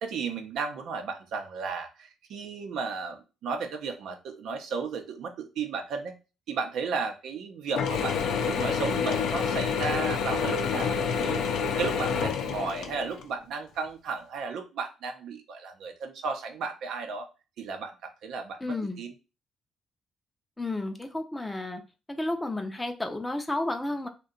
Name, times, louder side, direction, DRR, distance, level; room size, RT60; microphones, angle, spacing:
voice 1, 0.0-6.2 6.5-8.2 8.5-11.5 11.8-17.3 17.6-19.1, right 5 dB, 80° right, 5 dB, 0.6 m, -34 dB
Mechanisms / Drill, 7.8-13.3, left 6 dB, 80° left, 0.4 m, -28 dB
voice 2, 18.6-19.0 20.6-21.8 22.1-24.1, left 2 dB, 10° left, 4 dB, 0.4 m, -32 dB
2.7 x 2.2 x 3.7 m, 0.31 s
cardioid pair, 90°, 0 cm